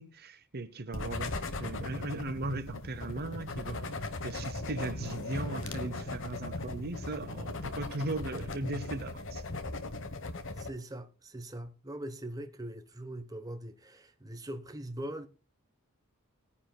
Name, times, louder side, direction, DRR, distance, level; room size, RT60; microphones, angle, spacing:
voice 1, 0.0-9.4, right 2 dB, 45° right, 0.9 m, -38 dB
sound 1, 0.9-10.7, left 2 dB, 60° left, 1.3 m, -38 dB
voice 2, 10.6-15.3, right 1 dB, 15° right, 1.1 m, -41 dB
20.5 x 9.8 x 2.3 m
head